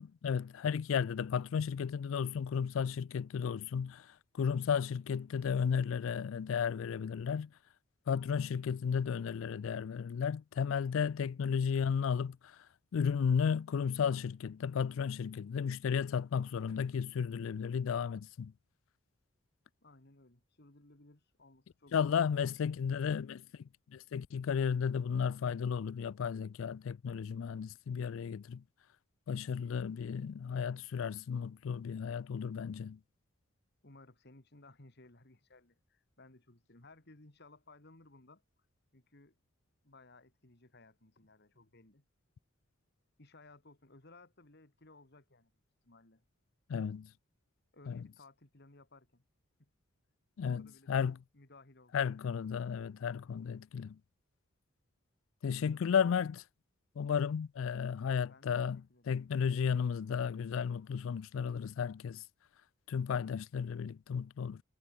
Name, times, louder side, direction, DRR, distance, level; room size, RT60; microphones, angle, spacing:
voice 1, 0.0-4.1 4.3-7.5 8.1-12.5 12.9-18.5 21.9-23.4 23.9-28.6 29.3-33.0 46.7-47.1 47.9-48.0 50.4-51.2 51.9-54.0 55.4-56.4 57.0-62.2 62.9-64.6, left 7 dB, 70° left, 0.4 m, -33 dB
voice 2, 19.8-22.4 33.8-38.7 38.9-39.3 39.8-42.0 43.2-45.5 45.8-46.2 47.7-49.2 49.6-49.7 50.4-51.1 51.3-52.0 55.5-56.2 58.2-59.2, left 2 dB, 50° left, 2.3 m, -60 dB
head